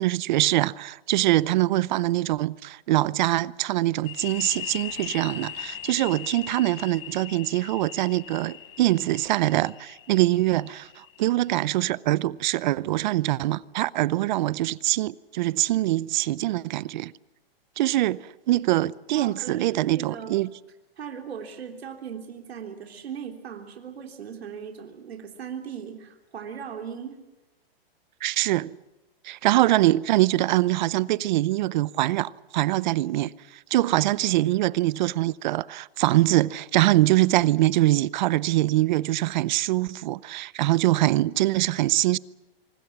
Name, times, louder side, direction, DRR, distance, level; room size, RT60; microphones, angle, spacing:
voice 1, 0.0-17.1 17.8-20.5 28.2-28.7 29.2-33.3 33.7-42.2, right 16 dB, 50° right, 0.7 m, -23 dB
sound 1, 4.1-11.5, left 11 dB, 60° left, 5.1 m, -40 dB
voice 2, 19.2-20.3 21.0-27.2, right 7 dB, 90° right, 3.5 m, -38 dB
25.5 x 24.5 x 6.0 m
hypercardioid pair, 150°, 30 cm